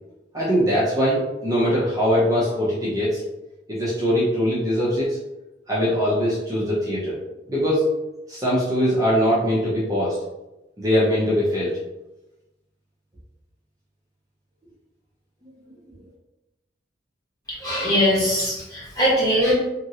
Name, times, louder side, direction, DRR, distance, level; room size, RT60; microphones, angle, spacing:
voice 1, 0.3-3.2 3.7-5.2 5.7-7.2 7.5-7.9 8.3-10.2 10.8-11.7, equal, 20° right, -7 dB, 0.6 m, -21 dB
voice 2, 17.5-19.5, equal, 20° left, -8 dB, 1.4 m, -21 dB
3.0 x 2.5 x 2.8 m, 0.99 s
head